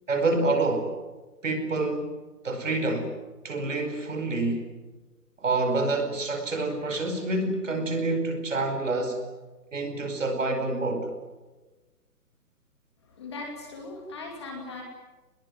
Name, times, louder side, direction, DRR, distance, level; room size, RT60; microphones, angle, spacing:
voice 1, 0.1-0.9 1.4-2.1 2.4-3.1 3.4-4.7 5.4-9.2 9.7-11.1, right 2 dB, 50° right, 6 dB, 5.1 m, -27 dB
voice 2, 13.0-14.8, left 3 dB, 15° left, 1 dB, 2.6 m, -39 dB
25.0 x 21.5 x 9.2 m, 1.2 s
hypercardioid pair, 180°, 47 cm